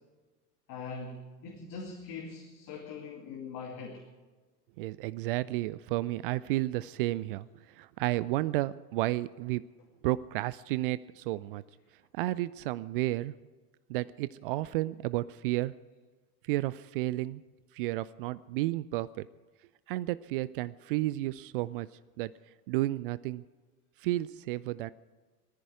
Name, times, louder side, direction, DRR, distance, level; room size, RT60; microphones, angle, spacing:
voice 1, 0.7-4.0, left 4 dB, 40° left, 1 dB, 2.4 m, -42 dB
voice 2, 4.8-9.6 10.0-11.6 12.1-13.3 13.9-15.7 16.5-17.4 17.7-19.3 19.9-21.9 22.2-22.3 22.7-23.4 24.0-24.9, right 17 dB, 40° right, 18 dB, 0.4 m, -32 dB
19.5 x 14.0 x 4.7 m, 1.3 s
figure-of-eight pair, 80°, 46 cm